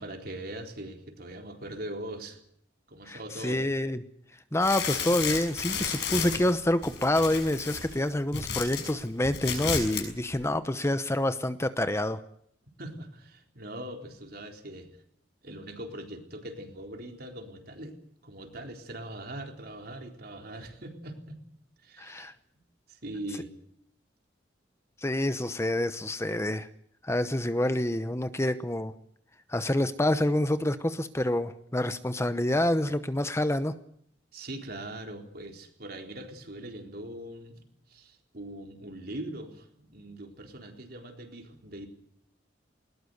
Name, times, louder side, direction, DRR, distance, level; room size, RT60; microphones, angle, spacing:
voice 1, 0.0-2.4 2.9-3.6 12.8-14.9 15.4-18.0 18.2-21.4 21.8-22.3 22.9-23.5 34.3-41.9, right 1 dB, 55° right, 4 dB, 4.1 m, -41 dB
voice 2, 3.1-4.0 4.5-12.2 22.0-22.3 25.0-26.7 27.0-28.9 29.5-33.7, left 1 dB, 15° left, 11 dB, 0.9 m, -27 dB
sound 1, 4.6-8.9 9.2-10.1 10.3-10.4, left 6 dB, 65° left, 6.5 m, -33 dB
20.5 x 20.0 x 8.0 m, 0.68 s
head